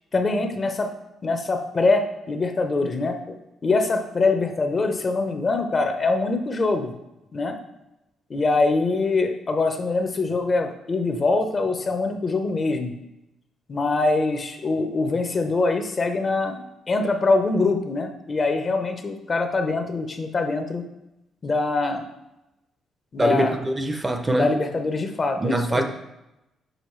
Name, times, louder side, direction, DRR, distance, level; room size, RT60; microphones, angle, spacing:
voice 1, 0.1-0.9 1.2-3.4 3.6-6.9 7.3-7.6 8.3-12.9 13.7-20.8 21.4-22.0 23.1-23.6 24.4-25.8, left 3 dB, 35° left, 6 dB, 0.8 m, -23 dB
voice 2, 23.2-24.5 25.4-25.8, right 1 dB, 20° right, 6 dB, 0.7 m, -23 dB
6.4 x 4.9 x 3.2 m, 0.91 s
cardioid pair, 90°, 0 cm